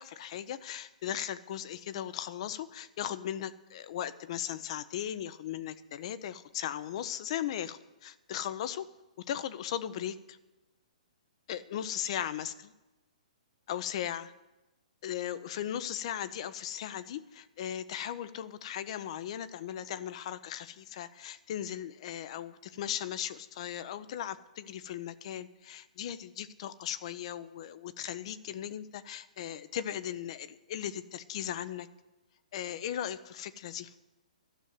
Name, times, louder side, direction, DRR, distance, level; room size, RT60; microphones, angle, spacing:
voice 1, 0.0-8.9 9.3-10.4 11.5-12.7 13.7-14.3 15.0-31.9 32.5-33.9, left 10 dB, 50° left, 14 dB, 0.7 m, -37 dB
12.5 x 6.5 x 9.3 m, 1.1 s
figure-of-eight pair, 125°, 4 cm